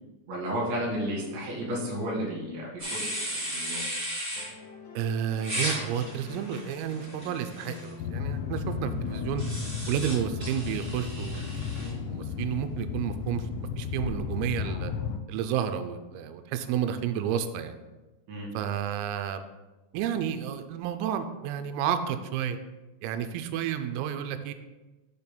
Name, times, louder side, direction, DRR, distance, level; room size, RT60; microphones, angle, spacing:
voice 1, 0.3-3.8 18.3-18.5, equal, 65° right, -4 dB, 4.2 m, -32 dB
sound 1, 2.8-4.5 5.4-7.9 9.4-11.9, equal, 30° right, 1.4 m, -35 dB
sound 2, 4.3-10.8 12.3-12.4, left 4 dB, 60° left, 2.7 m, -47 dB
voice 2, 5.0-9.4 9.9-14.9 15.3-17.8 18.5-19.5 19.9-22.6 23.0-24.5, right 9 dB, 90° right, 9 dB, 3.3 m, -31 dB
sound 3, 8.0-15.2, left 6 dB, 85° left, 3.0 m, -34 dB
12.0 x 7.1 x 2.2 m, 1.1 s
omnidirectional pair, 5.9 m